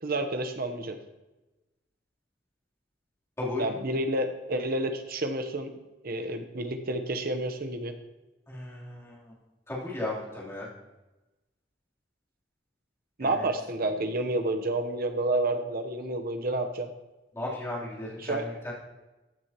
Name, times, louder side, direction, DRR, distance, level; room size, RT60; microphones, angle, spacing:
voice 1, 0.0-1.0 3.6-5.7 6.0-7.9 13.2-16.9 18.2-18.5, right 2 dB, 55° right, 7 dB, 1.0 m, -29 dB
voice 2, 8.5-9.3 9.7-10.7 13.2-13.5 17.3-18.7, left 2 dB, 15° left, -7 dB, 3.4 m, -35 dB
15.0 x 9.8 x 3.0 m, 1.1 s
head